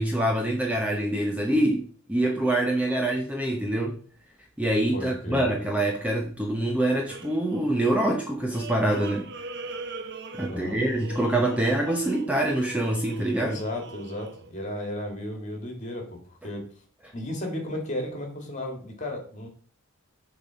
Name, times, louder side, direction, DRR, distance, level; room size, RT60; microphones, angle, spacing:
voice 1, 0.0-1.8 2.1-4.0 4.6-9.3 10.4-13.6, right 1 dB, 5° right, 1 dB, 0.8 m, -25 dB
voice 2, 4.9-5.5 10.4-10.8 13.4-16.7 17.1-19.5, left 1 dB, 35° left, 2 dB, 2.4 m, -34 dB
sound 1, 7.1-14.5, right 3 dB, 50° right, 0.6 m, -41 dB
7.1 x 4.1 x 6.3 m, 0.43 s
head